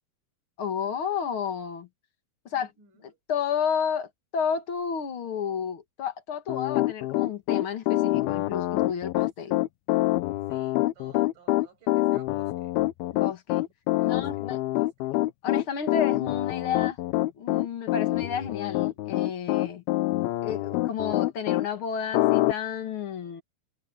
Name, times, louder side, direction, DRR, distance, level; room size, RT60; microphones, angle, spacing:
voice 1, 0.6-1.9 2.5-2.7 3.3-9.6 13.1-13.6 14.1-14.6 15.4-17.0 17.3-19.8 20.4-23.4, left 7 dB, 45° left, 2.0 m, -31 dB
voice 2, 2.5-3.2 10.5-12.8 14.0-15.2, right 5 dB, 60° right, 8.8 m, -56 dB
Piano, 6.5-21.7 22.1-22.5, left 17 dB, 85° left, 2.6 m, -25 dB
omnidirectional pair, 4.4 m